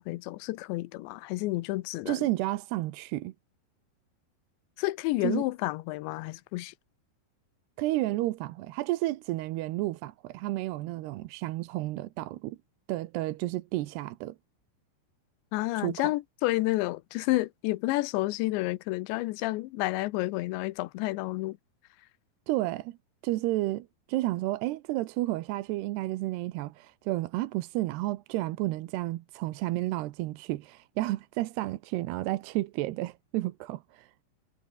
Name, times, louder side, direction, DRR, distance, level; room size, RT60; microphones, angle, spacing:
voice 1, 0.0-2.3 4.8-6.7 15.5-21.6, left 19 dB, 90° left, 3.1 m, -30 dB
voice 2, 2.1-3.3 5.2-5.5 7.8-12.6 12.9-14.4 15.7-16.1 22.5-23.0 23.2-34.1, right 17 dB, 75° right, 2.8 m, -31 dB
omnidirectional pair, 5.0 m